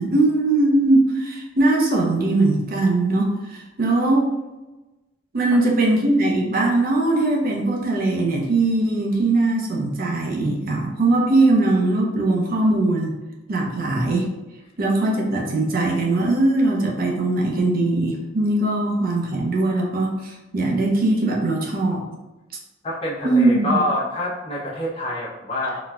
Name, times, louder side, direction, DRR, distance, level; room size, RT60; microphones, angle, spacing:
voice 1, 0.0-4.3 5.3-13.1 13.5-14.3 14.8-22.0 23.2-23.7, right 2 dB, 50° right, -1 dB, 0.5 m, -20 dB
voice 2, 22.8-25.8, left 1 dB, 35° left, -6 dB, 0.8 m, -26 dB
3.9 x 2.1 x 2.3 m, 1.1 s
head